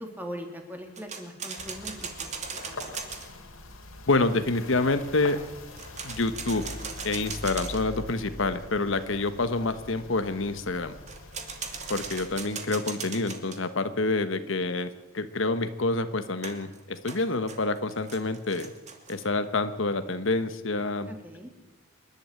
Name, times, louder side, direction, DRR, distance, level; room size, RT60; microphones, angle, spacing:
voice 1, 0.0-2.3 2.7-2.9 21.1-21.5, equal, 10° right, 3 dB, 2.9 m, -40 dB
sound 1, 1.0-3.3 5.7-8.0 11.1-13.6 16.4-19.3, right 5 dB, 35° right, 2.5 m, -38 dB
sound 2, 1.6-12.3, left 2 dB, 85° left, 3.5 m, -44 dB
voice 2, 4.1-5.4 6.0-6.6 7.0-10.9 11.9-18.7 19.1-21.1, left 2 dB, 65° left, 10 dB, 1.2 m, -27 dB
26.0 x 11.5 x 9.0 m, 1.1 s
head